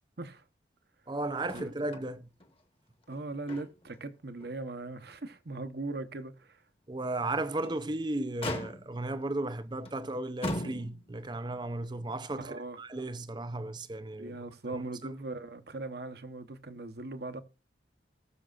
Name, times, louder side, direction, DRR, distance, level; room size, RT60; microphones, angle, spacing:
voice 1, 1.1-2.3 6.9-14.4 14.7-15.1, right 2 dB, 25° right, 0.6 m, -35 dB
Motor vehicle (road), 1.5-2.1 2.4-2.5 3.0-4.0 4.4-4.5 5.1-5.2 7.4-7.8 8.4-9.1 9.8-10.0 10.4-11.2 12.3-12.4, left 1 dB, 30° left, 1.4 m, -39 dB
voice 2, 3.1-6.6 12.4-12.8 14.2-17.4, right 2 dB, 60° right, 1.0 m, -39 dB
19.5 x 6.8 x 2.4 m
head